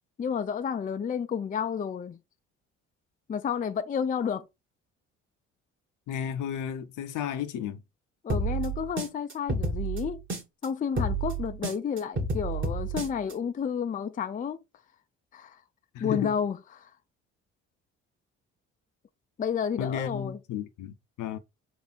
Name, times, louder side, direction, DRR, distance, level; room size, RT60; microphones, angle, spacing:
voice 1, 0.2-2.2 3.3-4.4 8.2-10.2 10.6-14.6 15.3-15.6 16.0-16.9 19.4-20.4, left 7 dB, 20° left, 0.5 m, -31 dB
voice 2, 6.1-7.8 15.9-16.3 19.8-21.4, left 9 dB, 55° left, 0.7 m, -33 dB
sound 1, 8.3-10.7 11.0-13.3, right 3 dB, 30° right, 1.6 m, -30 dB
4.4 x 2.5 x 4.4 m
figure-of-eight pair, 50°, 38 cm